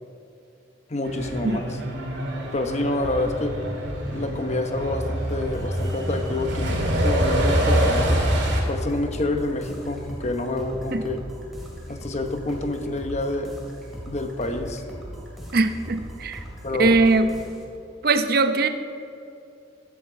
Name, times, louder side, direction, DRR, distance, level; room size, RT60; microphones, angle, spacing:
voice 1, 0.9-1.8 2.5-3.6 4.1-8.3 8.7-11.2 11.9-13.5 14.1-14.8 16.6-17.0, left 2 dB, 35° left, 6 dB, 1.1 m, -28 dB
Truck, 1.0-8.6, equal, 70° right, 2.4 m, -25 dB
sound 1, 5.2-17.6, equal, ahead, 2.4 m, -39 dB
voice 2, 15.5-16.4 16.8-17.3 18.0-18.7, right 3 dB, 55° right, 9 dB, 0.8 m, -20 dB
14.5 x 11.0 x 5.0 m, 2.6 s
head